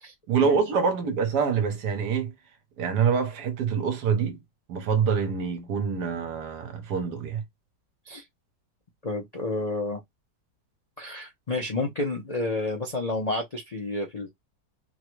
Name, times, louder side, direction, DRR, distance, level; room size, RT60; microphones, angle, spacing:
voice 1, 0.3-2.3 2.8-4.4 4.7-7.4, right 6 dB, 70° right, 1.4 m, -25 dB
voice 2, 9.0-10.0 11.0-14.3, left 2 dB, 65° left, 0.4 m, -30 dB
3.6 x 2.1 x 3.1 m
omnidirectional pair, 1.9 m